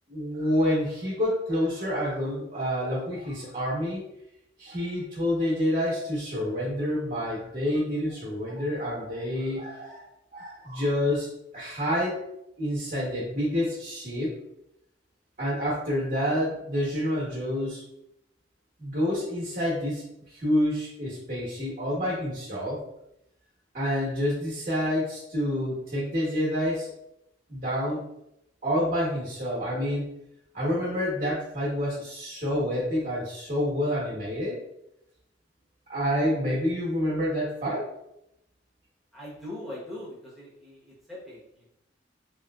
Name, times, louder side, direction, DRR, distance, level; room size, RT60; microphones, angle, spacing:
voice 1, 0.1-4.0 4.6-10.0 10.3-12.2 12.6-14.3 15.4-17.8 18.8-22.8 23.7-26.9 27.5-28.1 28.6-30.1 30.5-34.6 35.9-37.9, equal, 45° right, -7 dB, 1.0 m, -28 dB
voice 2, 39.1-41.7, left 1 dB, ahead, -9 dB, 1.0 m, -41 dB
3.0 x 2.9 x 2.3 m, 0.83 s
head